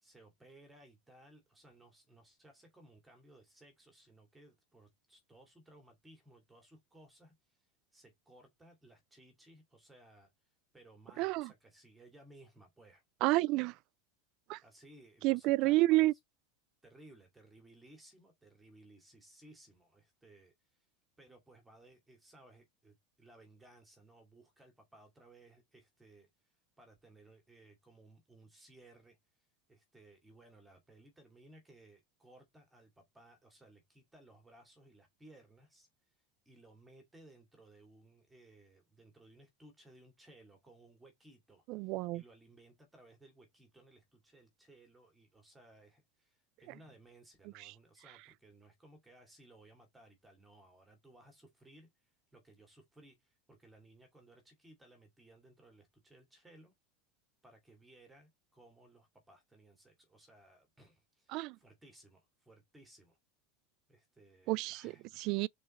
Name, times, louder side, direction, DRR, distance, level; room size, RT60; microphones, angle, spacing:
voice 1, 0.0-7.6 7.9-10.3 10.7-13.0 14.6-16.1 16.8-20.9 21.2-35.9 36.5-56.7 57.4-63.2 63.9-65.2, right 1 dB, 10° right, 2.3 m, -61 dB
voice 2, 11.2-11.5 13.2-13.7 14.5-14.6 15.2-16.1 41.7-42.2 61.3-61.6 64.5-64.9 65.2-65.5, right 19 dB, 50° right, 0.3 m, -29 dB
5.4 x 4.2 x 4.2 m
supercardioid pair, 145°, 0 cm